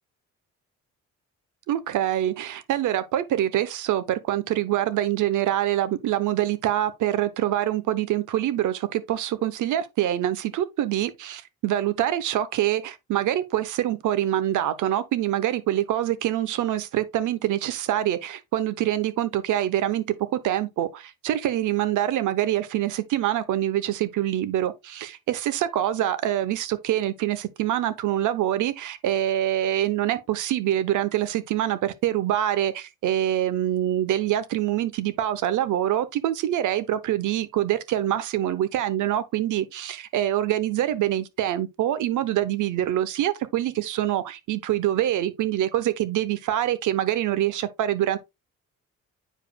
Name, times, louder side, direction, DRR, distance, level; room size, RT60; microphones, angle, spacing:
voice 1, 1.7-20.0 20.3-48.2, right 12 dB, 80° right, 0.9 m, -25 dB
8.9 x 4.9 x 2.3 m
cardioid pair, 90°, 30 cm